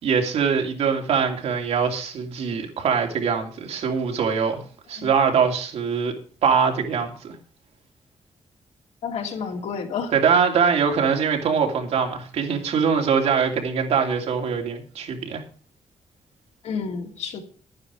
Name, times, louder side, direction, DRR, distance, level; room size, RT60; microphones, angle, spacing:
voice 1, 0.0-4.6 4.9-6.1 6.4-7.3 10.1-15.4, right 6 dB, 75° right, 2 dB, 2.7 m, -22 dB
voice 2, 9.0-10.1 16.6-17.4, left 6 dB, 80° left, 3 dB, 2.8 m, -30 dB
12.0 x 9.6 x 4.8 m, 0.41 s
wide cardioid pair, 150°, 11 cm